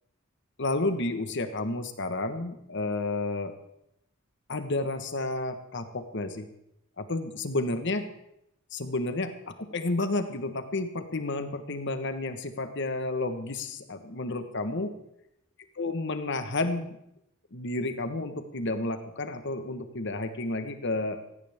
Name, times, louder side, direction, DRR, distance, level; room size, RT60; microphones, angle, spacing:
voice 1, 0.6-3.5 4.5-6.4 7.0-8.1 8.7-14.9 15.8-17.0 17.5-21.2, left 2 dB, 60° left, 8 dB, 1.4 m, -31 dB
17.5 x 15.5 x 3.6 m, 0.80 s
head